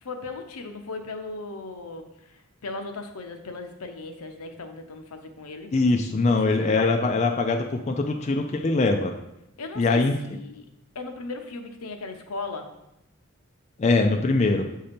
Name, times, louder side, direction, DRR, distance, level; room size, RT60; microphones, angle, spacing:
voice 1, 0.0-5.7 6.3-7.4 9.6-10.6 10.9-12.7, left 3 dB, 85° left, 5 dB, 0.7 m, -37 dB
voice 2, 5.7-9.1 9.8-10.1 13.8-14.6, left 3 dB, 30° left, 3 dB, 0.4 m, -22 dB
7.6 x 2.8 x 5.1 m, 0.85 s
head